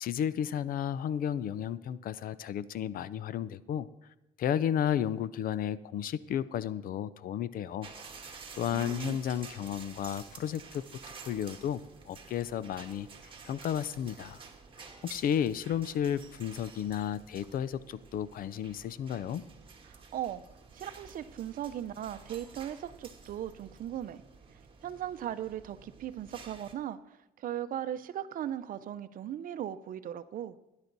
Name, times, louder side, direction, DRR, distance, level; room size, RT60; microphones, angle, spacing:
voice 1, 0.0-3.9 4.4-7.9 8.3-10.8 11.2-13.1 13.4-14.4 15.0-19.4, left 9 dB, 55° left, 17 dB, 0.6 m, -33 dB
sound 1, 7.8-26.7, right 5 dB, 30° right, 1.8 m, -51 dB
voice 2, 8.7-9.2 19.9-20.4 20.7-24.2 24.8-30.6, right 11 dB, 55° right, 13 dB, 0.7 m, -38 dB
17.5 x 10.5 x 4.1 m, 0.96 s
cardioid pair, 110°, 17 cm